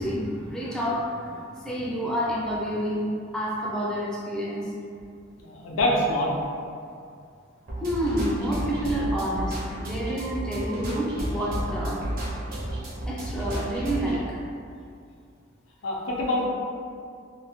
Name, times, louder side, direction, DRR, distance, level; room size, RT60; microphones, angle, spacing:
voice 1, 0.0-3.0 3.3-4.6 7.8-12.0 13.1-14.4, equal, 5° left, -6 dB, 0.4 m, -29 dB
voice 2, 5.3-6.3 15.8-16.5, left 1 dB, 80° left, -3 dB, 0.5 m, -25 dB
sound 1, 7.7-14.2, equal, 50° right, 0.7 m, -32 dB
2.6 x 2.1 x 3.4 m, 2.3 s
head